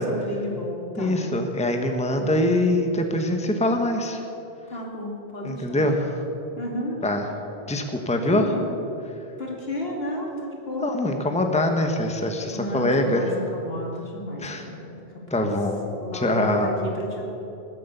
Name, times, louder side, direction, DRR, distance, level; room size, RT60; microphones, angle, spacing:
voice 1, 0.0-1.3 2.1-2.4 4.7-5.9 6.6-7.0 8.2-8.6 9.4-11.0 12.5-15.5 16.0-17.3, left 1 dB, 75° left, -1 dB, 2.9 m, -32 dB
voice 2, 1.0-4.2 5.4-6.2 7.0-7.2 7.7-8.5 10.8-13.2 14.4-14.6 15.3-15.8 16.1-16.7, left 1 dB, 5° left, 4 dB, 1.1 m, -23 dB
19.5 x 8.2 x 8.1 m, 3.0 s
omnidirectional pair, 1.0 m